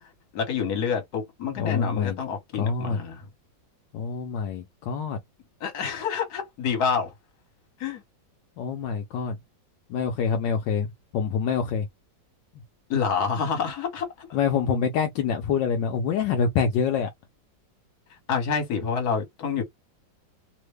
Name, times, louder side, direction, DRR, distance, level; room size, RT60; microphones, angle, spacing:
voice 1, 0.3-3.3 5.6-7.1 7.8-8.0 12.9-14.4 18.3-19.6, left 6 dB, 55° left, 1.7 m, -28 dB
voice 2, 1.5-2.2 2.6-3.0 3.9-5.2 8.6-9.4 9.9-10.9 11.1-11.9 14.3-17.1, left 6 dB, 80° left, 1.3 m, -26 dB
3.4 x 2.1 x 3.2 m
omnidirectional pair, 2.0 m